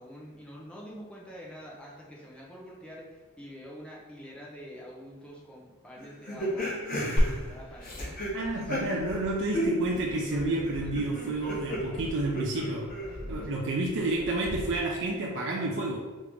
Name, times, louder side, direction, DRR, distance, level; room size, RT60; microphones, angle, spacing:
voice 1, 0.0-6.7 7.0-9.1 10.3-11.2 13.4-14.3, equal, 5° left, -4 dB, 0.8 m, -46 dB
sound 1, 6.0-9.3 9.5-13.5, equal, 40° left, 0.9 m, -34 dB
Glass, 7.2-15.1, equal, 25° left, 1.3 m, -36 dB
voice 2, 8.3-12.9 13.3-16.0, right 2 dB, 55° right, -2 dB, 0.5 m, -30 dB
3.8 x 3.1 x 3.5 m, 1.2 s
head